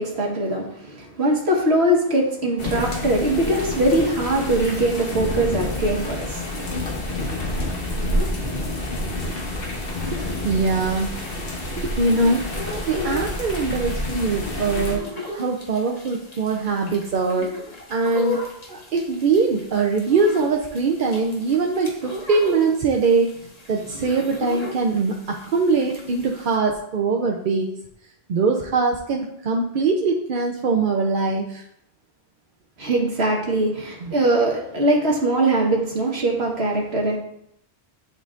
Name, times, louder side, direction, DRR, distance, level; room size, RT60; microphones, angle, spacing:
voice 1, 0.0-6.4 32.8-37.2, right 1 dB, 90° right, -1 dB, 1.6 m, -21 dB
sound 1, 2.6-15.0, left 1 dB, 65° left, 1.3 m, -28 dB
sound 2, 8.1-26.6, left 2 dB, 40° left, 1.2 m, -37 dB
voice 2, 10.1-11.5 11.7-12.5 12.9-15.1 15.3-17.5 17.9-18.4 18.7-23.3 23.7-27.7 28.3-31.6 34.0-34.1, right 4 dB, 60° right, 0 dB, 0.7 m, -22 dB
10.5 x 3.9 x 2.5 m, 0.74 s
omnidirectional pair, 1.1 m